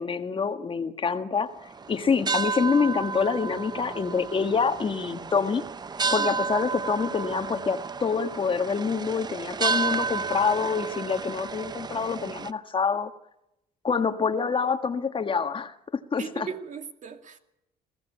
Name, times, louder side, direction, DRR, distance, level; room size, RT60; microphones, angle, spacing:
voice 1, 0.0-5.6 6.1-13.1 13.8-16.5, left 5 dB, 30° left, 1.5 m, -26 dB
sound 1, 1.6-12.5, right 4 dB, 25° right, 0.7 m, -32 dB
voice 2, 16.2-17.4, right 6 dB, 50° right, 2.4 m, -37 dB
21.0 x 16.0 x 8.4 m
cardioid pair, 110°, 17 cm